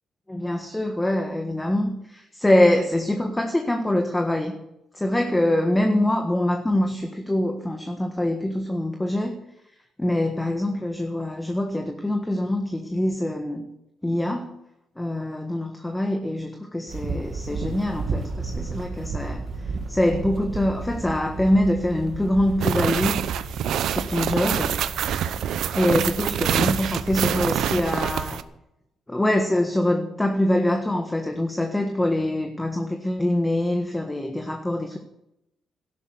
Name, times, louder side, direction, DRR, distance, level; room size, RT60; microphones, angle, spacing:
voice 1, 0.3-4.6 4.9-9.4 10.0-13.7 14.0-14.5 15.0-19.4 19.9-23.2 23.9-24.8 25.7-28.4 29.1-35.0, left 1 dB, 10° left, 5 dB, 1.4 m, -24 dB
sound 1, 16.9-28.1, right 3 dB, 50° right, 2.3 m, -34 dB
sound 2, 22.6-28.4, right 10 dB, 75° right, 0.8 m, -26 dB
12.5 x 11.0 x 7.8 m, 0.84 s
cardioid pair, 90°, 0 cm